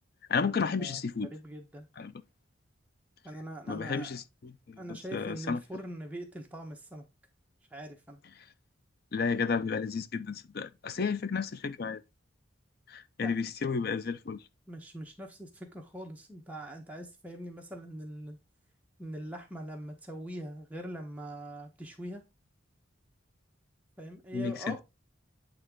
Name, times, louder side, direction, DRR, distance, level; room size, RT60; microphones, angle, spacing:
voice 1, 0.3-1.3 2.0-2.1 3.7-5.6 9.1-12.0 12.9-14.4 24.3-24.8, left 5 dB, 50° left, 0.5 m, -32 dB
voice 2, 1.3-1.9 3.2-4.2 4.8-7.1 7.7-8.2 13.2-13.3 14.7-18.4 19.0-22.2 24.0-24.8, right 1 dB, 5° right, 1.1 m, -42 dB
8.7 x 3.5 x 3.7 m
head